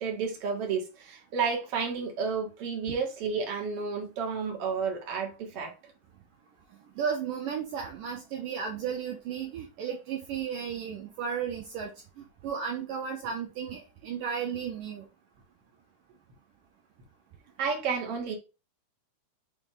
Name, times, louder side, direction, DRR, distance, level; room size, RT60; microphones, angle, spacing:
voice 1, 0.0-5.7 17.6-18.4, right 5 dB, 45° right, 2.7 m, -31 dB
voice 2, 7.0-11.9 12.2-15.1, right 7 dB, 65° right, 2.7 m, -34 dB
6.9 x 4.4 x 3.7 m
omnidirectional pair, 4.4 m